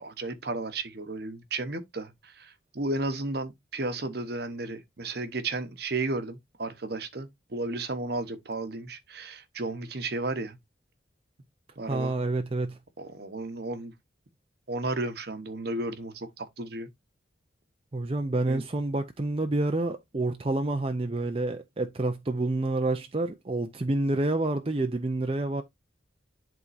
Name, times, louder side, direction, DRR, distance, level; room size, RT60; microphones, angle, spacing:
voice 1, 0.0-10.6 11.8-12.1 13.0-13.9 14.7-16.9 18.5-18.6, right 2 dB, 55° right, 1.0 m, -33 dB
voice 2, 11.9-12.8 17.9-25.6, right 2 dB, 30° right, 0.5 m, -28 dB
11.0 x 3.7 x 2.6 m
head